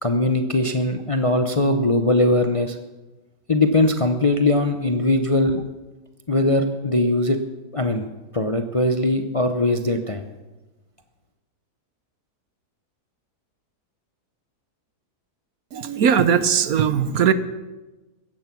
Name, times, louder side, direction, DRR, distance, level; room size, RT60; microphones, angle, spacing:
voice 1, 0.0-2.8 3.5-5.6 6.3-7.4 7.7-8.1 8.3-10.2, left 2 dB, 30° left, 6 dB, 0.7 m, -20 dB
voice 2, 15.7-17.3, right 8 dB, 65° right, 13 dB, 1.3 m, -19 dB
16.0 x 14.0 x 6.1 m, 1.1 s
omnidirectional pair, 1.7 m